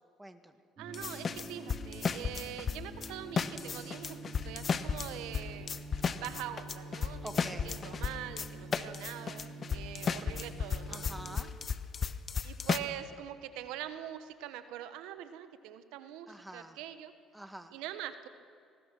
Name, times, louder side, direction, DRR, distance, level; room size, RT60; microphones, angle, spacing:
voice 1, 0.2-0.5 7.2-7.7 10.9-11.5 16.3-16.8 17.3-17.7, right 1 dB, 5° right, 7 dB, 1.9 m, -46 dB
sound 1, 0.8-11.4, right 2 dB, 40° right, 5.8 m, -47 dB
voice 2, 0.8-5.7 6.1-11.0 12.4-17.1 17.7-18.3, right 11 dB, 80° right, 10 dB, 1.1 m, -43 dB
sound 2, 0.9-3.1 3.4-12.8, left 6 dB, 40° left, 1.0 m, -34 dB
25.5 x 19.5 x 6.1 m, 2.4 s
supercardioid pair, 75°, 0 cm